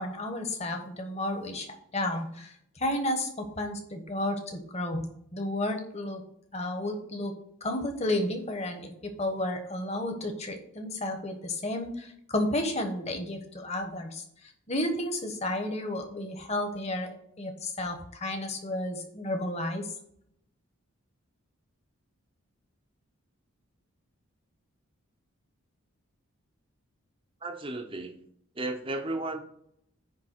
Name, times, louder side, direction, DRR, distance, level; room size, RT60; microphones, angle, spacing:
voice 1, 0.0-1.7 1.9-5.0 5.3-6.2 6.5-7.3 7.6-19.8, left 1 dB, 30° left, 4 dB, 1.2 m, -32 dB
voice 2, 27.4-28.2 28.6-29.5, right 2 dB, 25° right, 5 dB, 0.7 m, -34 dB
9.8 x 3.4 x 6.6 m, 0.70 s
head